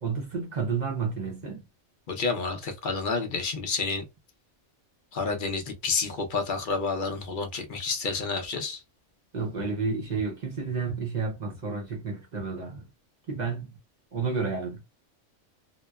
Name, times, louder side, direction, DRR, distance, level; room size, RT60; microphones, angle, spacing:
voice 1, 0.0-1.6 9.3-12.9 13.3-13.8 14.1-14.8, right 5 dB, 45° right, 0.6 m, -31 dB
voice 2, 2.1-4.0 5.1-8.8, left 4 dB, 50° left, 0.7 m, -29 dB
2.9 x 2.0 x 2.2 m
omnidirectional pair, 1.3 m